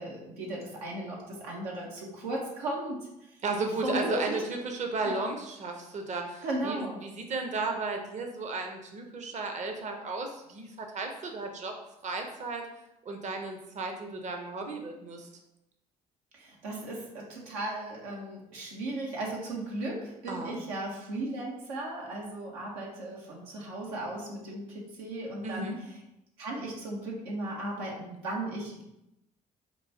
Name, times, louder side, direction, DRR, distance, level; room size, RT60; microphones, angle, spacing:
voice 1, 0.0-3.4 3.8-4.4 5.0-5.2 6.4-7.0 16.3-26.0 26.4-28.8, right 1 dB, 90° right, -2 dB, 0.8 m, -36 dB
voice 2, 3.4-11.7 12.0-12.6 13.0-15.3 20.3-20.6 25.4-25.8, right 3 dB, 40° right, 3 dB, 0.6 m, -34 dB
4.5 x 2.3 x 2.7 m, 0.88 s
hypercardioid pair, 55°, 19 cm